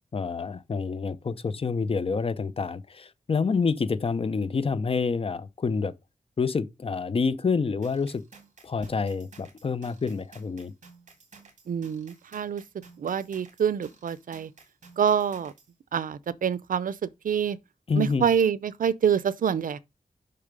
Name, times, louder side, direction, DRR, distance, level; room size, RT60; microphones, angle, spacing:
voice 1, 0.1-5.9 6.4-8.2 8.6-10.7 17.9-18.2, left 5 dB, 45° left, 0.6 m, -28 dB
sound 1, 7.8-15.7, right 4 dB, 60° right, 2.3 m, -54 dB
voice 2, 11.7-12.6 13.0-14.5 15.0-15.5 15.9-17.6 17.9-19.8, right 8 dB, 80° right, 0.6 m, -26 dB
6.8 x 5.7 x 5.1 m
wide cardioid pair, 130°, 14 cm